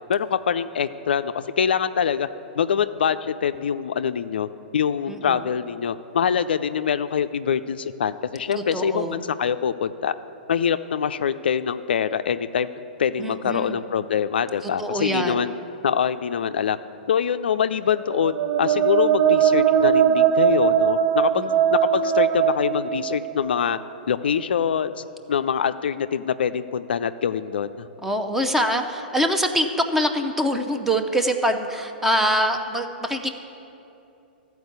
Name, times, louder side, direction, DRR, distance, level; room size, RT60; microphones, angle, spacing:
voice 1, 0.1-2.3 2.6-4.5 4.7-10.1 10.5-12.7 13.0-15.5 15.8-16.8 17.1-21.4 21.7-23.8 24.1-25.0 25.3-27.9, left 7 dB, 70° left, 12 dB, 0.4 m, -24 dB
voice 2, 5.1-5.5 8.5-9.2 13.2-13.8 14.6-15.4 21.4-21.5 28.0-33.3, equal, 5° right, 5 dB, 0.7 m, -24 dB
sound 1, 18.0-23.8, right 9 dB, 35° right, 0.5 m, -20 dB
13.5 x 4.6 x 8.1 m, 2.8 s
hypercardioid pair, 115°, 6 cm